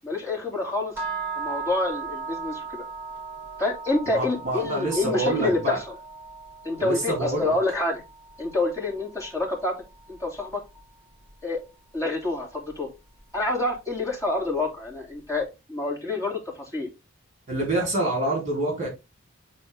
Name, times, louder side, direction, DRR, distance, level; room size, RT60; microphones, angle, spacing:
voice 1, 0.0-0.9 1.3-2.8 3.6-5.8 6.6-8.0 8.4-9.8 10.1-10.6 11.4-11.6 11.9-12.9 13.3-16.9, left 2 dB, 15° left, 2.8 m, -27 dB
sound 1, 1.0-11.0, right 4 dB, 10° right, 3.9 m, -38 dB
voice 2, 4.2-5.8 6.8-7.5 17.5-18.9, right 2 dB, 35° right, 3.6 m, -26 dB
8.7 x 4.2 x 3.6 m
head